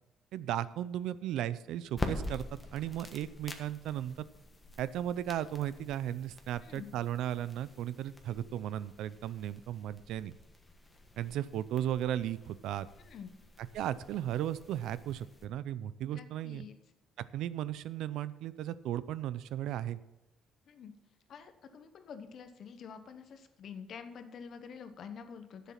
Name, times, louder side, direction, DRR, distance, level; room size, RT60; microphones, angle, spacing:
voice 1, 0.3-2.4 2.7-4.3 4.8-10.3 11.2-12.9 13.7-16.7 17.3-20.0, right 11 dB, 80° right, 17 dB, 0.5 m, -35 dB
sound 1, 1.9-15.5, left 2 dB, 15° left, 1.3 m, -46 dB
voice 2, 6.6-6.9 13.0-13.4 16.1-16.7 20.7-20.9 21.3-25.7, left 6 dB, 55° left, 9 dB, 1.1 m, -47 dB
11.0 x 7.3 x 5.8 m, 0.95 s
cardioid pair, 115°, 0 cm